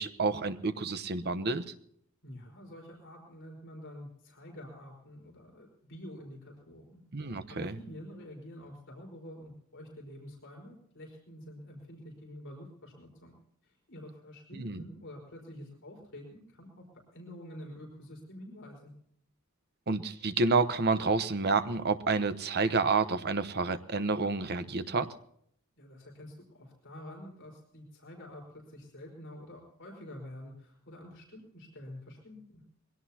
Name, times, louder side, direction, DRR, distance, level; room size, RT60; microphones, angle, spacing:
voice 1, 0.0-1.7 7.1-7.8 14.5-14.8 19.9-25.1, right 4 dB, 50° right, 11 dB, 1.0 m, -29 dB
voice 2, 2.2-7.0 7.5-13.3 13.6-16.8 17.1-18.9 25.8-32.6, left 1 dB, 60° left, 0 dB, 4.5 m, -48 dB
22.0 x 17.5 x 2.9 m, 0.68 s
head